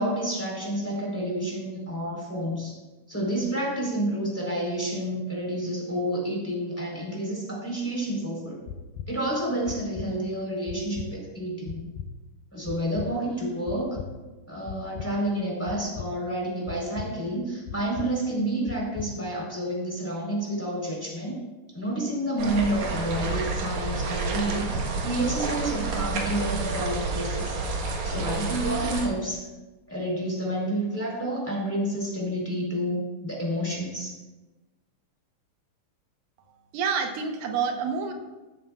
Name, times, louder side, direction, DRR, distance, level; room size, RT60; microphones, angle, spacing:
voice 1, 0.0-2.7 3.1-8.6 9.1-11.8 12.5-14.0 14.5-21.4 21.7-27.6 28.0-29.4 29.9-34.1, right 1 dB, 5° left, -3 dB, 3.5 m, -29 dB
sound 1, 8.7-9.1 9.7-10.1 10.7-11.1 11.7-12.1 12.7-13.1 13.7-14.1 14.7-15.1 15.7-16.1 16.7-17.1 17.7-18.1 18.7-19.1, left 8 dB, 85° left, 2.3 m, -37 dB
sound 2, 22.4-29.1, right 3 dB, 65° right, 2.5 m, -29 dB
voice 2, 36.7-38.1, right 6 dB, 85° right, 4 dB, 2.6 m, -27 dB
15.0 x 13.0 x 2.4 m, 1.2 s
omnidirectional pair, 3.8 m